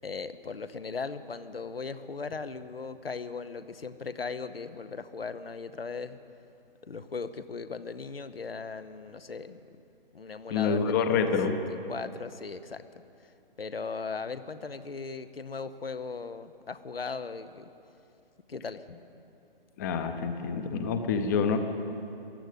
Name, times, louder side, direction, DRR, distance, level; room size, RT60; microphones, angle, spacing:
voice 1, 0.0-6.2 6.9-9.6 10.1-12.8 13.6-17.7 18.5-18.8, left 4 dB, 80° left, 12 dB, 0.8 m, -38 dB
voice 2, 10.5-11.6 19.8-21.6, left 6 dB, 20° left, 7 dB, 0.7 m, -27 dB
15.0 x 10.0 x 9.1 m, 2.7 s
figure-of-eight pair, 135°, 29 cm